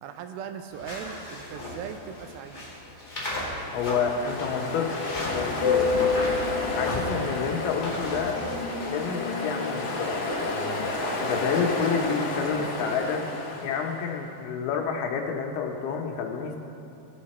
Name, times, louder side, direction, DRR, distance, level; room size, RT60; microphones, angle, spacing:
voice 1, 0.0-2.7, right 7 dB, 80° right, 6 dB, 2.4 m, -39 dB
sound 1, 0.7-9.0, left 1 dB, 30° left, 0.9 m, -36 dB
Ocean, 3.0-14.1, left 3 dB, 75° left, 1.4 m, -30 dB
voice 2, 3.7-5.9 6.8-8.4 8.8-10.8 11.2-13.2 13.6-16.6, left 6 dB, 90° left, 2 dB, 2.9 m, -29 dB
16.5 x 6.7 x 4.2 m, 2.9 s
omnidirectional pair, 4.4 m